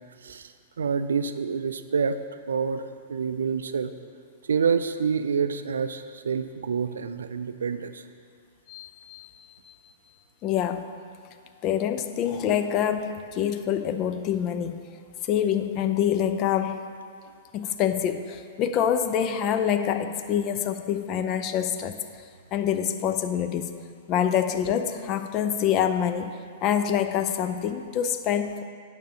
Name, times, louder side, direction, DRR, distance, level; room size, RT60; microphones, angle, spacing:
voice 1, 0.8-2.2 2.5-2.8 3.1-3.9 4.4-8.0, right 6 dB, 70° right, 11 dB, 0.4 m, -27 dB
voice 2, 8.7-9.3 9.7-9.8 10.4-10.8 11.6-14.8 15.3-16.8 17.5-22.0 22.5-23.8 24.1-26.3 26.6-28.6, left 9 dB, 35° left, 9 dB, 0.5 m, -26 dB
9.1 x 5.9 x 5.4 m, 2.2 s
figure-of-eight pair, 100°, 0 cm